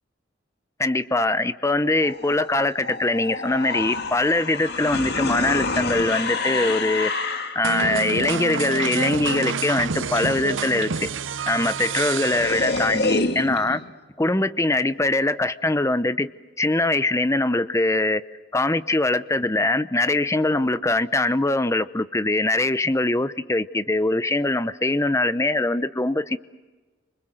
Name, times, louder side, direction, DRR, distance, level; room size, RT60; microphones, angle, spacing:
voice 1, 0.8-11.1 11.5-13.8 14.2-16.3 16.6-18.2 18.5-26.4, left 2 dB, 15° left, 13 dB, 0.8 m, -22 dB
sound 1, 2.0-7.7 11.6-11.7 11.9-13.9, left 3 dB, 55° left, 2.0 m, -28 dB
sound 2, 7.6-13.3, right 5 dB, 80° right, 0.9 m, -28 dB
28.5 x 25.5 x 7.8 m, 1.3 s
head